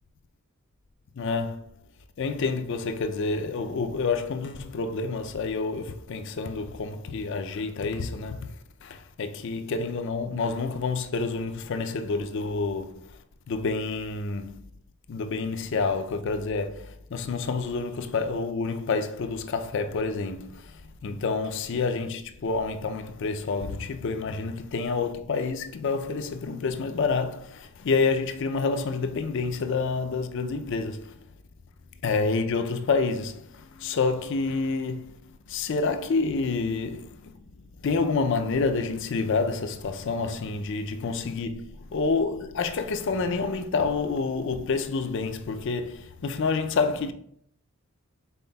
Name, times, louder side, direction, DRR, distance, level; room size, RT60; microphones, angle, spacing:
voice 1, 1.2-1.7 2.2-8.5 8.8-13.2 13.5-14.6 15.1-31.2 32.0-35.2 35.5-37.4 37.8-47.1, left 4 dB, 55° left, 0.4 m, -28 dB
5.5 x 4.2 x 2.2 m
head